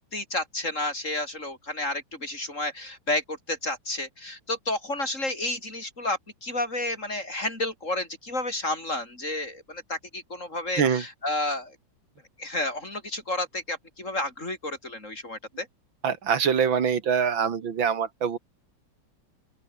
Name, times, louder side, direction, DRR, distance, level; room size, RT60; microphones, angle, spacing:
voice 1, 0.1-11.8 12.4-15.7, left 2 dB, 40° left, 6.4 m, -31 dB
voice 2, 16.0-18.4, right 7 dB, 80° right, 2.7 m, -24 dB
open air
omnidirectional pair, 2.1 m